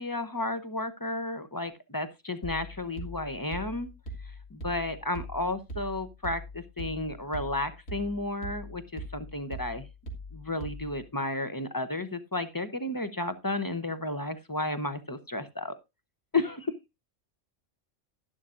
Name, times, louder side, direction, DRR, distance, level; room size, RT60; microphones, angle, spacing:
voice 1, 0.0-3.9 4.5-9.9 10.3-15.7 16.3-16.7, left 2 dB, 20° left, 10 dB, 0.7 m, -32 dB
sound 1, 2.4-11.1, right 1 dB, 55° left, 2.3 m, -42 dB
11.5 x 11.5 x 2.5 m, 0.23 s
omnidirectional pair, 1.3 m